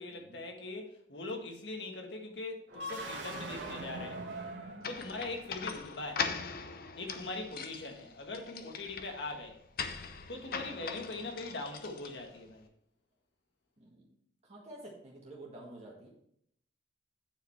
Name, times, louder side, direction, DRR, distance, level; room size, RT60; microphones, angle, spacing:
voice 1, 0.0-4.3 4.9-6.4 7.0-9.6 10.3-12.7, left 2 dB, 75° left, 1.5 m, -41 dB
sound 1, 2.7-5.7, right 1 dB, 85° right, 1.9 m, -42 dB
sound 2, 4.8-12.5, left 5 dB, 55° left, 0.7 m, -41 dB
voice 2, 5.0-5.5 7.0-7.6 8.9-9.2 13.8-14.1 14.4-16.1, right 1 dB, 40° right, 1.6 m, -52 dB
9.1 x 5.0 x 4.5 m
head